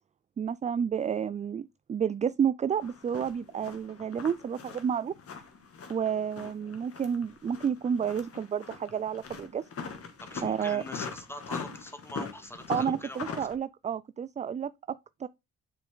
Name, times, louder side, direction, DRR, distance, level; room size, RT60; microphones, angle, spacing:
voice 1, 0.4-5.1 5.9-9.6 10.4-10.8 12.7-15.3, right 8 dB, 25° right, 0.3 m, -30 dB
sound 1, 2.8-13.5, left 5 dB, 50° left, 2.1 m, -41 dB
voice 2, 10.2-13.4, left 1 dB, 10° left, 2.0 m, -43 dB
7.3 x 6.0 x 3.9 m
cardioid pair, 90°, 30 cm